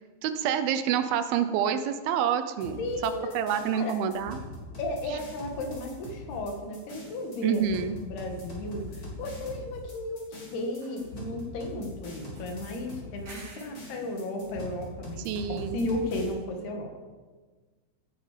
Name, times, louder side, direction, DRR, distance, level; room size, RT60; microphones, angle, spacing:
voice 1, 0.2-4.4 5.1-5.2 7.4-8.0 15.3-15.8, right 8 dB, 80° right, 10 dB, 2.5 m, -28 dB
sound 1, 2.6-16.3, left 1 dB, 30° left, 4.0 m, -42 dB
voice 2, 2.8-3.3 3.7-3.9 4.8-16.9, left 1 dB, 80° left, 3 dB, 3.7 m, -34 dB
sound 2, 6.3-6.5 9.7-10.5 10.7-11.8 12.4-13.9, right 3 dB, 60° right, 4.4 m, -53 dB
16.0 x 9.8 x 5.1 m, 1.4 s
omnidirectional pair, 4.5 m